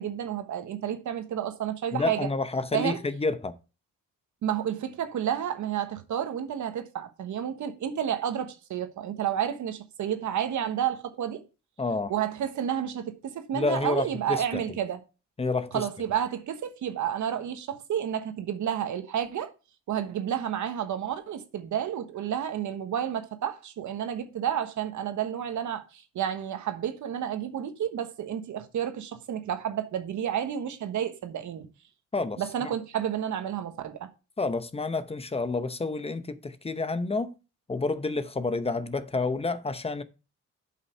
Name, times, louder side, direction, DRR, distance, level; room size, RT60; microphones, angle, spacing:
voice 1, 0.0-2.3 2.7-3.0 4.4-11.4 12.1-15.0 15.7-19.5 19.9-31.7 32.4-34.1, right 9 dB, 70° right, 1.3 m, -31 dB
voice 2, 1.9-3.5 11.8-12.1 13.5-14.6 15.4-15.8 32.1-32.7 34.4-37.3 37.7-40.0, left 3 dB, 20° left, 0.8 m, -29 dB
7.8 x 5.7 x 4.4 m
cardioid pair, 95°, 31 cm